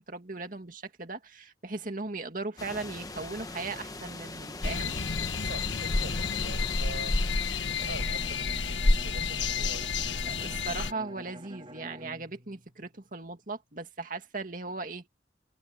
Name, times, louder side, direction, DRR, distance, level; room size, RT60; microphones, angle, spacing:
voice 1, 0.0-4.9 10.3-15.1, right 3 dB, 45° right, 2.3 m, -38 dB
sound 1, 2.6-8.4, left 2 dB, 20° left, 1.1 m, -42 dB
sound 2, 4.6-10.9, left 3 dB, 80° left, 1.5 m, -29 dB
voice 2, 5.4-7.2 7.7-10.5, right 2 dB, 75° right, 6.9 m, -45 dB
Bowed string instrument, 7.8-13.4, right 1 dB, 30° right, 2.7 m, -48 dB
head